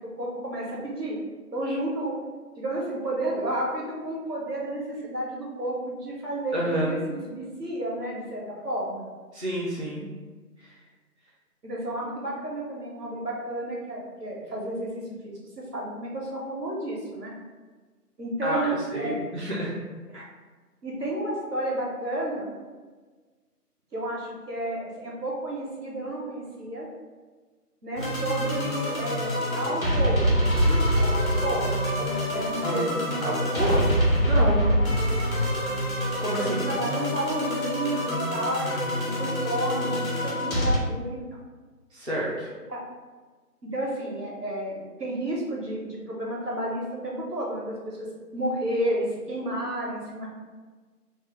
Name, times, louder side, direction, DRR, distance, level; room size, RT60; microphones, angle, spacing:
voice 1, 0.2-1.2 1.5-2.1 2.6-9.1 11.6-14.9 15.2-17.3 18.2-19.1 20.1-20.2 20.8-22.5 23.9-26.9 27.8-30.3 30.7-33.8 36.4-41.2 42.7-42.8 43.6-50.3, right 1 dB, 80° right, -4 dB, 1.2 m, -31 dB
voice 2, 6.5-7.1 9.3-10.1 10.6-10.7 18.4-19.7 32.6-32.8 33.2-33.9 34.2-35.0 36.2-36.6 41.9-42.5, right 1 dB, 50° right, -7 dB, 0.4 m, -29 dB
sound 1, 28.0-40.8, equal, 60° left, 1.2 m, -25 dB
3.1 x 2.0 x 3.2 m, 1.4 s
figure-of-eight pair, 170°, 47 cm